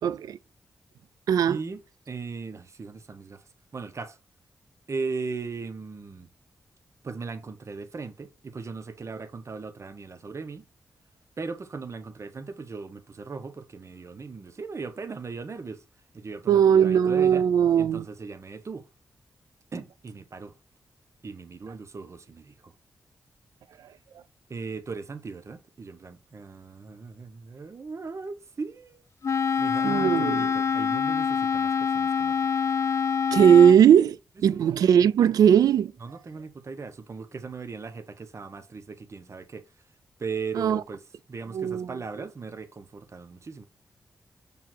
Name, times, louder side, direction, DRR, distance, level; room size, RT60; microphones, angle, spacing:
voice 1, 0.0-0.4 1.3-1.6 16.5-18.0 29.8-30.5 33.3-34.2 34.4-35.9 40.6-40.8 41.5-41.9, right 8 dB, 80° right, 0.3 m, -19 dB
voice 2, 1.5-1.8 2.1-4.2 4.9-6.3 7.0-10.6 11.4-15.8 16.1-17.5 17.7-18.9 19.7-20.5 21.2-22.7 24.5-32.3 34.5-34.6 36.0-39.7 40.2-41.0 41.3-43.6, right 4 dB, 50° right, 1.0 m, -38 dB
Wind instrument woodwind instrument, 29.2-33.8, left 6 dB, 50° left, 0.4 m, -25 dB
6.0 x 3.5 x 4.5 m
supercardioid pair, 45°, 6 cm